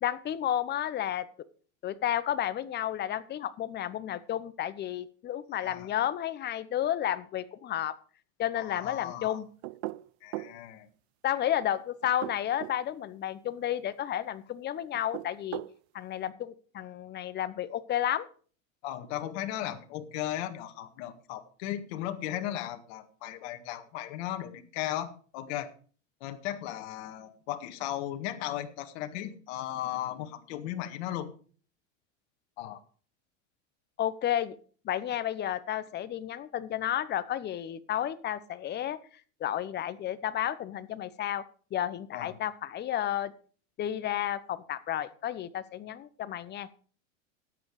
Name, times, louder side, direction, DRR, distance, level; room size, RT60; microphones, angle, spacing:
voice 1, 0.0-1.3 1.8-8.0 8.4-9.5 11.2-15.6 15.9-18.3 34.0-34.6 34.8-39.0 39.4-41.4 41.7-43.3 43.8-46.8, left 11 dB, 25° left, 14 dB, 0.9 m, -32 dB
voice 2, 8.6-9.4 10.2-10.9 18.8-25.7 26.2-31.3 32.6-32.8 42.1-42.4, left 12 dB, 60° left, 7 dB, 1.9 m, -36 dB
sound 1, 9.6-10.6 12.0-12.8 14.9-15.8, right 19 dB, 60° right, 0.6 m, -38 dB
13.0 x 9.1 x 4.8 m, 0.42 s
supercardioid pair, 130°, 38 cm